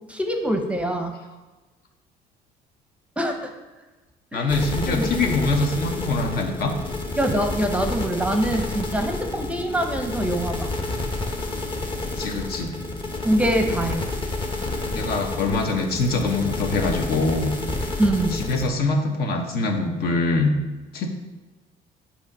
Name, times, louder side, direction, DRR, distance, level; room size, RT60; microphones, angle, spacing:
voice 1, 0.1-1.2 3.2-3.5 4.3-4.5 4.9-5.1 7.2-10.7 13.2-14.1 18.0-18.5, right 1 dB, 5° right, 4 dB, 0.7 m, -24 dB
voice 2, 4.3-6.7 12.2-12.7 14.9-17.5 18.3-20.5 20.9-21.1, left 3 dB, 65° left, 3 dB, 1.0 m, -24 dB
sound 1, 4.5-18.7, left 2 dB, 30° left, 1.0 m, -29 dB
8.1 x 2.9 x 5.3 m, 1.2 s
cardioid pair, 110°, 17 cm